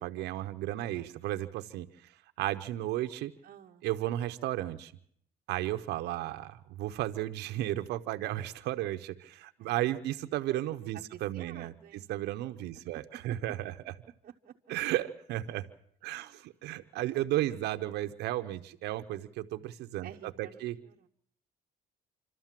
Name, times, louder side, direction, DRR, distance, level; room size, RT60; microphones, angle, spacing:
voice 1, 0.0-1.9 2.4-3.3 3.8-4.9 5.5-13.9 14.7-15.6 16.0-20.8, right 14 dB, 80° right, 8 dB, 0.9 m, -34 dB
voice 2, 3.4-3.9 6.1-6.3 9.6-9.8 10.9-12.0 12.9-13.4 14.2-14.5 16.1-16.4 17.5-17.6 20.0-21.1, right 10 dB, 50° right, 0 dB, 0.9 m, -50 dB
27.5 x 12.5 x 7.5 m, 0.66 s
cardioid pair, 110°, 17 cm